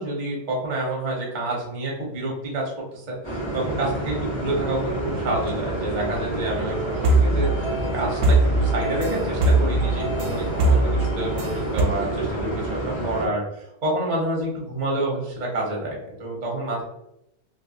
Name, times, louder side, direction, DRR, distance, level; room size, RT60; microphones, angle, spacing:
voice 1, 0.0-2.6 2.9-13.4 13.8-16.8, right 1 dB, 45° right, -2 dB, 0.6 m, -28 dB
sound 1, 3.2-13.3, right 1 dB, 25° left, 0.6 m, -29 dB
sound 2, 6.7-11.8, right 2 dB, 75° right, 1.2 m, -22 dB
3.3 x 2.7 x 2.7 m, 0.83 s
omnidirectional pair, 2.0 m